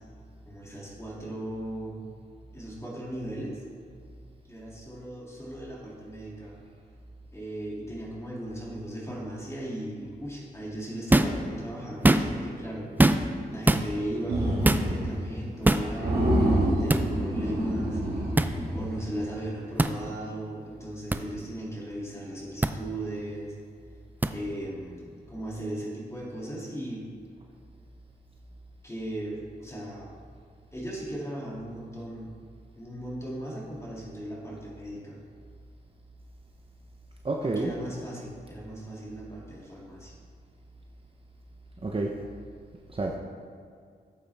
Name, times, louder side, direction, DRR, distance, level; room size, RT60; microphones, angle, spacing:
voice 1, 0.5-2.1 2.5-3.6 4.4-6.6 7.3-12.9 13.5-18.0 18.7-23.5 24.3-27.1 28.8-30.2 30.7-32.3 32.8-35.2 37.4-40.1, right 1 dB, 15° left, -4 dB, 2.6 m, -37 dB
sound 1, 11.1-11.4 11.9-12.5 13.0-13.4 13.7-13.9 14.6-14.9 15.6-15.9 16.9-17.0 18.4-18.5 19.8-19.9 21.1-21.2 22.6-22.7 24.2-24.3, right 1 dB, 10° right, 0.4 m, -21 dB
sound 2, 14.3-15.3 15.6-15.7 16.0-19.4, right 1 dB, 70° right, 2.6 m, -27 dB
voice 2, 37.2-37.7 41.8-42.3 42.9-43.2, right 2 dB, 30° right, 0 dB, 0.8 m, -29 dB
13.0 x 8.3 x 3.5 m, 2.2 s
wide cardioid pair, 90°, 17 cm